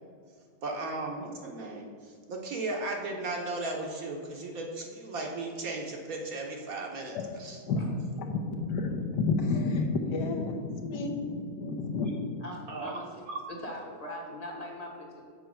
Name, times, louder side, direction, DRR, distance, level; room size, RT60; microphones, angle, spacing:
voice 1, 0.6-7.6 12.7-13.4, right 2 dB, 60° right, 0 dB, 1.1 m, -36 dB
voice 2, 8.2-12.1, left 3 dB, 70° left, 2 dB, 1.4 m, -30 dB
voice 3, 12.4-13.2 13.6-15.2, left 1 dB, 25° left, -2 dB, 1.1 m, -41 dB
6.9 x 4.5 x 6.2 m, 2.1 s
omnidirectional pair, 1.9 m